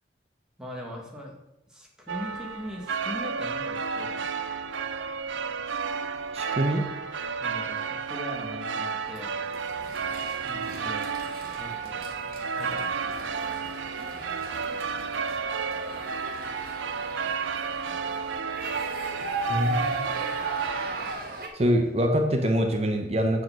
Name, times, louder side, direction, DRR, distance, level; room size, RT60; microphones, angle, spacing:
voice 1, 0.6-1.3 1.7-4.6 7.4-9.3 10.3-11.1 11.6-12.0 12.5-13.5, left 1 dB, 5° right, -1 dB, 1.5 m, -41 dB
sound 1, 2.1-21.1, right 5 dB, 85° right, 0.5 m, -32 dB
voice 2, 6.3-6.9 19.5-19.9 21.5-23.4, equal, 35° right, 4 dB, 0.7 m, -24 dB
sound 2, 9.2-21.5, right 2 dB, 50° right, 1.2 m, -37 dB
7.7 x 4.8 x 6.0 m, 0.90 s
head